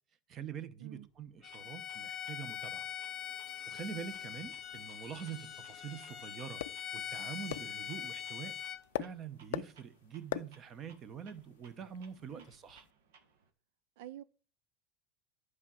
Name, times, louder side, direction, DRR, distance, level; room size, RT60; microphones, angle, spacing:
voice 1, 0.3-2.9 3.7-6.6 6.9-8.6 9.0-12.9, right 8 dB, 25° right, 0.9 m, -45 dB
voice 2, 0.8-1.1 12.3-12.5 14.0-14.2, right 13 dB, 65° right, 0.4 m, -48 dB
Bowed string instrument, 1.4-8.8, left 10 dB, 30° left, 0.7 m, -43 dB
Clock, 1.5-13.5, right 5 dB, 85° right, 1.8 m, -65 dB
sound 1, 4.1-12.9, left 14 dB, 85° left, 0.4 m, -46 dB
11.0 x 4.8 x 7.5 m
supercardioid pair, 160°, 0 cm